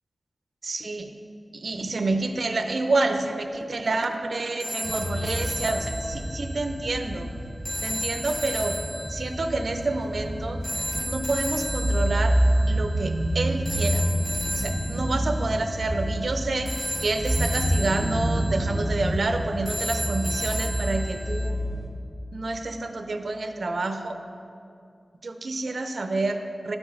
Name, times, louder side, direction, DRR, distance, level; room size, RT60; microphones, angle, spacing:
voice 1, 0.6-1.1 1.5-7.3 7.8-8.8 9.1-10.6 11.0-12.4 12.7-14.0 14.5-21.6 22.3-24.2 25.2-26.8, right 2 dB, 65° right, 6 dB, 0.6 m, -28 dB
sound 1, 4.6-21.5, equal, ahead, 0.8 m, -35 dB
sound 2, 4.8-21.9, right 1 dB, 15° right, 1.7 m, -28 dB
12.5 x 5.3 x 4.8 m, 2.5 s
wide cardioid pair, 80°, 0 cm